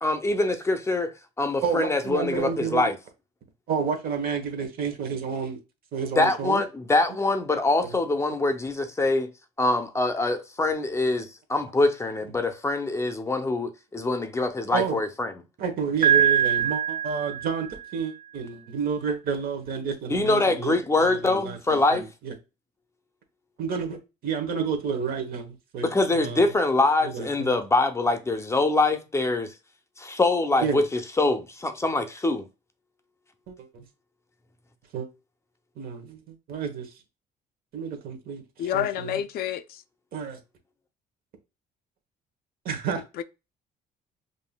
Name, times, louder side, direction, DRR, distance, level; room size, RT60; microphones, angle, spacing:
voice 1, 0.0-3.0 6.2-9.3 9.6-15.3 20.1-22.0 25.8-29.5 30.0-32.5, left 2 dB, 15° left, 0.6 m, -24 dB
voice 2, 1.6-2.9 3.7-5.6 5.9-6.6 7.8-7.9 14.7-15.0 15.6-17.7 17.9-22.3 23.6-24.0 24.2-26.5 27.0-27.6 30.6-30.8 33.5-33.8 34.9-35.1 35.8-36.9 37.7-39.2 40.1-40.4 42.6-43.0, right 6 dB, 60° right, 1.1 m, -30 dB
Piano, 16.0-17.9, right 9 dB, 45° right, 0.6 m, -23 dB
voice 3, 38.6-39.8 43.2-43.3, left 10 dB, 65° left, 0.4 m, -28 dB
5.3 x 2.6 x 2.2 m
cardioid pair, 110°, 17 cm